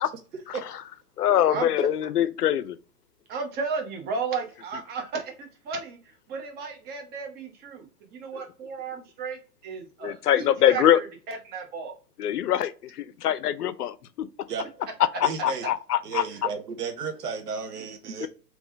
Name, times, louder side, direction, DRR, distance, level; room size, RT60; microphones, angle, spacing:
voice 1, 1.2-2.8 10.0-11.0 12.2-14.3 15.2-16.2 18.2-18.3, left 11 dB, 70° left, 0.6 m, -23 dB
voice 2, 3.3-12.0, right 5 dB, 20° right, 0.9 m, -34 dB
voice 3, 15.2-15.7 16.0-18.3, right 6 dB, 70° right, 1.1 m, -33 dB
3.5 x 3.0 x 2.6 m
hypercardioid pair, 120°, 48 cm